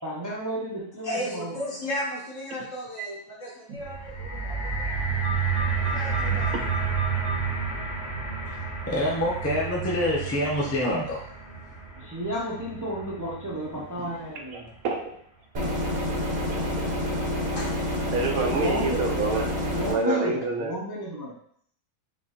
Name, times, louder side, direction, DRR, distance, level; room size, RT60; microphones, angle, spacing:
voice 1, 0.0-1.6 12.0-14.7 18.3-19.0 19.6-21.3, equal, 20° right, -5 dB, 0.5 m, -32 dB
voice 2, 1.0-5.1 5.9-6.5 17.5-17.7, equal, 60° left, -5 dB, 1.5 m, -35 dB
sound 1, 3.8-14.0 14.7-14.8, right 5 dB, 35° left, 1.1 m, -30 dB
voice 3, 5.2-7.3 14.8-15.0 18.1-19.5 19.8-20.8, right 3 dB, 75° right, 2 dB, 1.0 m, -29 dB
voice 4, 8.9-11.2 14.0-14.1, left 1 dB, 10° left, -5 dB, 0.8 m, -26 dB
sound 2, 15.5-19.9, left 1 dB, 40° right, 0.9 m, -28 dB
5.1 x 3.1 x 2.9 m, 0.64 s
omnidirectional pair, 1.5 m